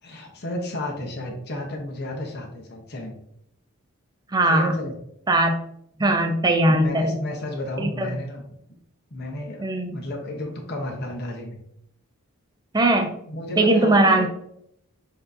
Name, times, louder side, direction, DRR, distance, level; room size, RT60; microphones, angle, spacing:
voice 1, 0.0-3.1 4.5-4.9 6.7-8.4 9.1-11.6 13.3-14.3, left 1 dB, 45° left, 0 dB, 0.8 m, -32 dB
voice 2, 4.3-4.7 5.3-5.6 6.0-7.1 7.8-8.2 9.6-9.9 12.7-13.2 13.6-14.3, right 1 dB, 20° right, 4 dB, 0.4 m, -19 dB
6.7 x 2.7 x 2.6 m, 0.73 s
head